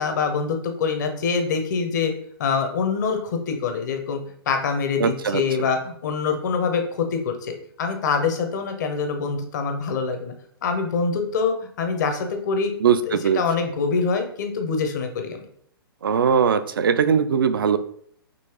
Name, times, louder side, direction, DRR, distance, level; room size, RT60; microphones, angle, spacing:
voice 1, 0.0-2.1 2.4-4.2 4.5-7.5 7.8-10.3 10.6-12.7 13.1-15.4, left 5 dB, 50° left, 6 dB, 0.7 m, -25 dB
voice 2, 5.0-5.7 12.8-13.4 16.0-17.8, right 7 dB, 65° right, 12 dB, 0.4 m, -20 dB
5.3 x 2.9 x 2.9 m, 0.62 s
figure-of-eight pair, 115°, 13 cm